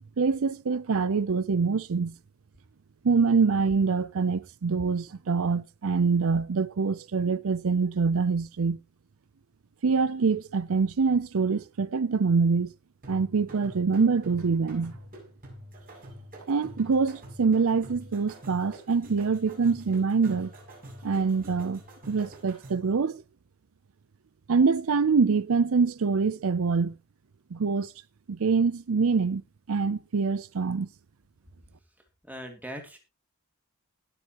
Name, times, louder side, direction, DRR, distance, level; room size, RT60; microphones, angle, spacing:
voice 1, 0.2-2.2 3.0-8.8 9.8-12.7 13.1-14.9 16.5-20.5 21.0-21.8 22.1-23.2 24.5-27.0 27.5-27.9 28.3-29.4 29.7-30.9, right 5 dB, 70° right, 0.5 m, -25 dB
sound 1, 13.0-23.0, equal, 40° right, 7.2 m, -46 dB
voice 2, 32.2-33.0, equal, 5° right, 3.0 m, -40 dB
20.0 x 7.5 x 3.0 m
head